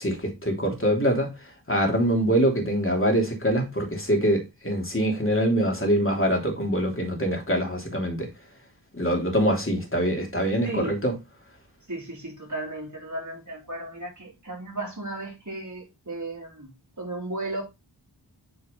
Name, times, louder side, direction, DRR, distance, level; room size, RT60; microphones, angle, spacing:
voice 1, 0.0-8.3 8.9-11.1, equal, 30° left, 2.9 m, -24 dB
voice 2, 11.9-17.6, right 2 dB, 40° right, 3.7 m, -35 dB
8.6 x 4.7 x 3.7 m
wide cardioid pair, 55°, 43 cm